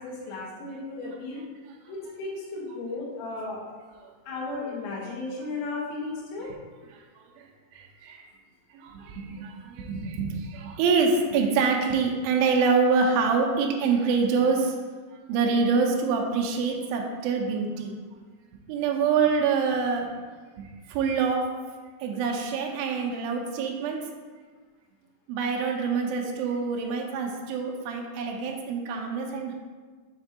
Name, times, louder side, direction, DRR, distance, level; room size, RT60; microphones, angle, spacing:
voice 1, 0.0-1.4 1.9-3.6 4.3-6.5, left 3 dB, 65° left, -4 dB, 1.8 m, -35 dB
voice 2, 7.7-8.3 8.7-14.8 15.3-18.0 18.7-20.1 20.6-21.5 22.0-24.0 25.3-29.5, right 5 dB, 80° right, 1 dB, 2.2 m, -26 dB
6.7 x 3.4 x 4.3 m, 1.4 s
omnidirectional pair, 4.9 m